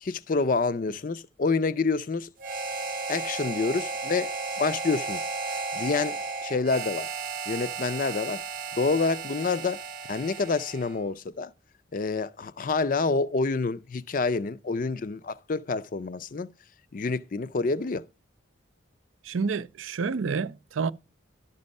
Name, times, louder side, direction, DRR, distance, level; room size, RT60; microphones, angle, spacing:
voice 1, 0.0-2.3 3.1-5.3 5.7-7.1 7.5-8.4 8.7-9.8 10.1-11.5 11.9-16.5 16.9-18.1, left 4 dB, 45° left, 0.4 m, -28 dB
Harmonica, 2.4-11.0, right 4 dB, 45° right, 0.7 m, -34 dB
voice 2, 19.2-20.9, right 5 dB, 85° right, 0.5 m, -29 dB
12.0 x 5.4 x 5.2 m
head